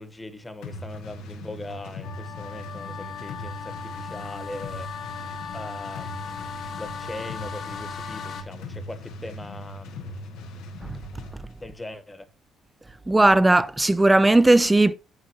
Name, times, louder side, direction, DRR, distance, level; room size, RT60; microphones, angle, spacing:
voice 1, 0.0-4.9 5.5-10.3 11.6-12.3, left 1 dB, 15° left, 1.5 m, -40 dB
sound 1, 0.6-11.4, left 1 dB, 90° left, 2.1 m, -39 dB
sound 2, 2.0-8.4, left 6 dB, 55° left, 2.0 m, -38 dB
voice 2, 13.1-14.9, right 2 dB, 10° right, 0.7 m, -17 dB
9.8 x 9.1 x 3.0 m
cardioid pair, 110°, 0 cm